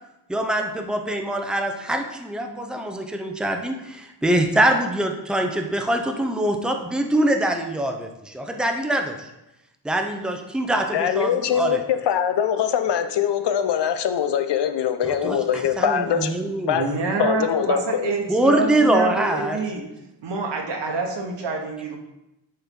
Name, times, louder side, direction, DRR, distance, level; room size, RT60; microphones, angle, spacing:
voice 1, 0.3-9.2 9.8-11.8 15.0-16.8 18.3-19.6, right 1 dB, ahead, 4 dB, 0.6 m, -23 dB
voice 2, 10.9-16.3 16.7-16.8 17.2-18.1, left 8 dB, 70° left, 8 dB, 0.7 m, -22 dB
voice 3, 16.7-19.9 20.2-22.0, right 4 dB, 75° right, 2 dB, 1.4 m, -27 dB
10.0 x 4.4 x 3.7 m, 0.91 s
wide cardioid pair, 145°, 43 cm